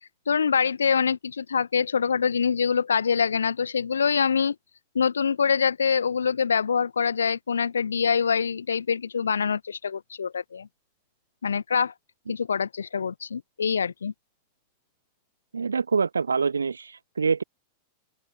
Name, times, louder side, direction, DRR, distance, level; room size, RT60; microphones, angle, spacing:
voice 1, 0.3-4.5 4.9-10.7 11.4-11.9 12.3-14.1, left 6 dB, 70° left, 1.1 m, -25 dB
voice 2, 15.5-17.4, right 5 dB, 75° right, 0.6 m, -25 dB
open air
figure-of-eight pair, 90°, 0 cm